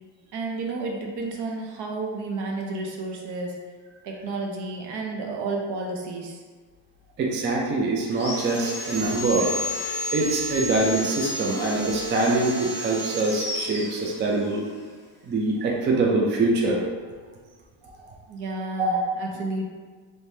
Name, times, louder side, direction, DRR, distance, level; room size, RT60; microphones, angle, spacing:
voice 1, 0.3-3.6 4.0-6.4 18.3-19.7, right 3 dB, 60° right, 0 dB, 0.7 m, -31 dB
voice 2, 7.2-9.5 10.1-14.6 15.3-16.8 18.8-19.0, right 2 dB, 25° right, -1 dB, 0.3 m, -24 dB
Sawing, 8.1-14.6, equal, 5° left, 0.9 m, -32 dB
3.1 x 2.2 x 2.6 m, 1.5 s
cardioid pair, 95°, 45 cm